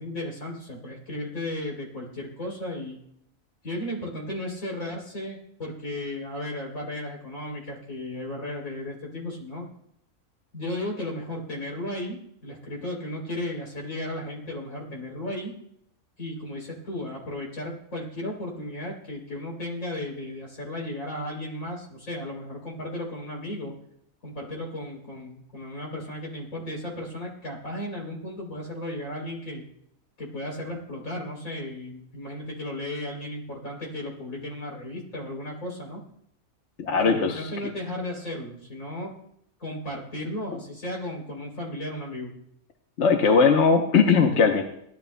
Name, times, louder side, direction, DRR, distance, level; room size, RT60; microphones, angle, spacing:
voice 1, 0.0-3.0 3.6-9.7 10.5-15.6 16.2-23.7 24.2-29.6 30.2-36.0 37.0-39.1 39.6-42.3, left 1 dB, 75° left, -1 dB, 4.0 m, -35 dB
voice 2, 36.8-37.4 43.0-44.6, left 5 dB, 55° left, 3 dB, 1.2 m, -19 dB
18.0 x 11.5 x 2.2 m, 0.73 s
omnidirectional pair, 1.5 m